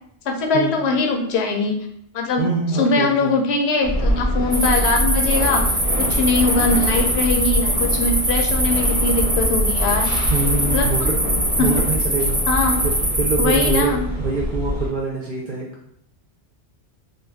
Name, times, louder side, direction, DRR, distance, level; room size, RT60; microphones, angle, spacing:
voice 1, 0.2-1.9 2.1-2.4 2.7-10.1 10.7-11.1 11.6-11.8 12.5-12.8 13.4-14.1, left 3 dB, 75° left, 2 dB, 0.9 m, -21 dB
voice 2, 2.4-3.3 10.3-11.2 11.6-12.4 13.2-15.7, right 3 dB, 55° right, -4 dB, 0.6 m, -24 dB
sound 1, 3.8-14.9, equal, 40° left, 0.7 m, -24 dB
sound 2, 4.5-13.8, right 1 dB, 20° right, 0.3 m, -23 dB
2.5 x 2.4 x 3.4 m, 0.70 s
omnidirectional pair, 1.1 m